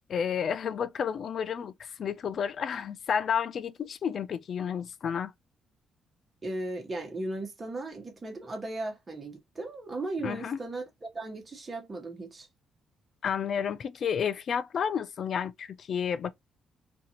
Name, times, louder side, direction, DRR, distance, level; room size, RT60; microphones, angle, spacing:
voice 1, 0.1-5.3 10.2-10.6 13.2-16.3, left 7 dB, 55° left, 0.3 m, -31 dB
voice 2, 6.4-12.5, right 2 dB, 30° right, 1.2 m, -37 dB
2.6 x 2.4 x 2.9 m
cardioid pair, 90°, 0 cm